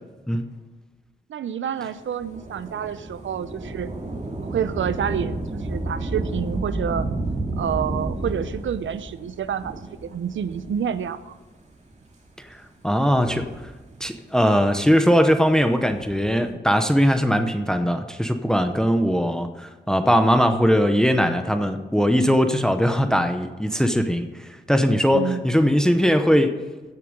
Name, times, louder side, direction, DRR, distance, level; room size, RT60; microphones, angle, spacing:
voice 1, 1.3-3.9 4.5-7.1 7.6-11.3 25.1-25.4, right 8 dB, 85° right, 14 dB, 0.7 m, -28 dB
Thunder / Rain, 2.2-11.2 11.9-12.0 12.9-14.2 15.7-16.5, right 2 dB, 35° right, 2.3 m, -31 dB
voice 2, 12.4-13.5 14.0-26.6, equal, 5° left, 8 dB, 0.8 m, -20 dB
16.0 x 6.8 x 5.2 m, 1.3 s
wide cardioid pair, 110°, 19 cm